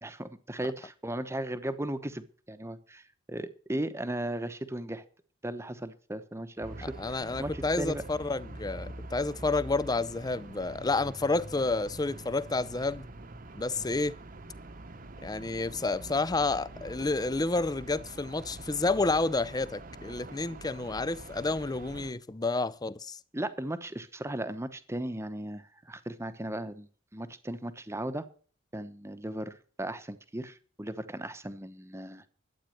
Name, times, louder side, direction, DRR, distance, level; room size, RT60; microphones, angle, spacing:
voice 1, 0.0-5.0 5.4-8.0 23.3-28.3 28.7-32.2, right 1 dB, 15° right, 1.0 m, -37 dB
sound 1, 6.6-22.1, right 2 dB, 45° right, 1.0 m, -45 dB
voice 2, 6.8-13.1 13.5-14.2 15.2-23.2, left 3 dB, 20° left, 0.5 m, -30 dB
12.0 x 9.0 x 6.5 m
head